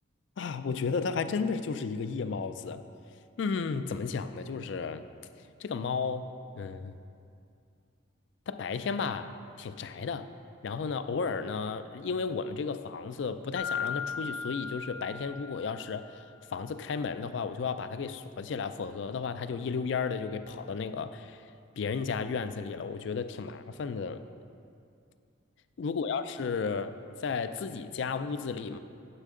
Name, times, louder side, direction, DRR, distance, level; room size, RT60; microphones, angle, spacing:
voice 1, 0.4-2.8 3.4-5.0 5.6-6.3 6.5-6.9 8.5-10.3 10.6-16.2 16.5-21.5 21.8-24.2 25.8-28.8, left 5 dB, 60° left, 11 dB, 0.4 m, -33 dB
Mallet percussion, 13.6-16.1, left 6 dB, 85° left, 1.3 m, -37 dB
9.8 x 7.6 x 3.7 m, 2.5 s
head